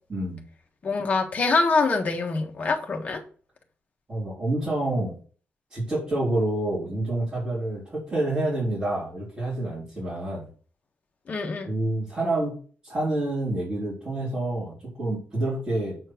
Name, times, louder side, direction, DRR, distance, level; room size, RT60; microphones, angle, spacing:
voice 1, 0.1-0.4 4.1-5.1 5.7-10.5 11.7-12.6 12.8-16.0, right 1 dB, 30° right, 4.1 m, -28 dB
voice 2, 0.8-3.2 11.3-11.7, left 4 dB, 40° left, 1.5 m, -24 dB
8.0 x 4.5 x 6.0 m
wide cardioid pair, 160°, 4 cm